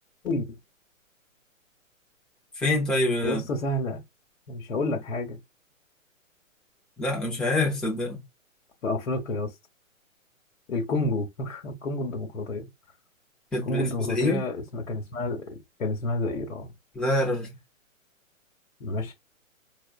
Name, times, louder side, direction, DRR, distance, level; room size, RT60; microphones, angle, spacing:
voice 1, 2.6-3.4 7.0-8.2 13.5-14.4 16.9-17.5, left 1 dB, ahead, 0.6 m, -26 dB
voice 2, 3.2-4.0 4.5-5.4 8.8-9.5 10.7-12.7 13.7-16.7 18.8-19.1, left 2 dB, 65° left, 1.2 m, -29 dB
4.2 x 2.4 x 2.4 m
figure-of-eight pair, 125°, 40 cm